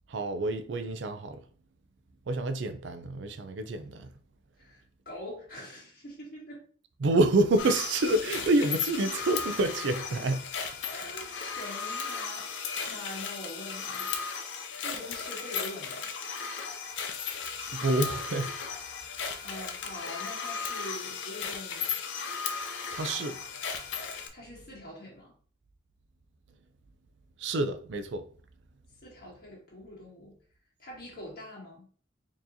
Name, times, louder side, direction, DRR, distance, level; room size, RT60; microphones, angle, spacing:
voice 1, 0.1-1.4 2.3-4.1 7.0-10.4 17.7-18.5 22.9-23.4 27.4-28.3, right 2 dB, 80° right, 0.4 m, -28 dB
voice 2, 4.6-6.7 8.6-8.7 10.8-12.5 12.8-14.1 14.8-16.1 19.4-22.0 24.3-25.3 29.0-30.4 30.8-31.9, left 1 dB, 55° left, 1.7 m, -44 dB
sound 1, 7.6-24.3, left 6 dB, 90° left, 0.6 m, -36 dB
4.4 x 2.9 x 2.7 m
head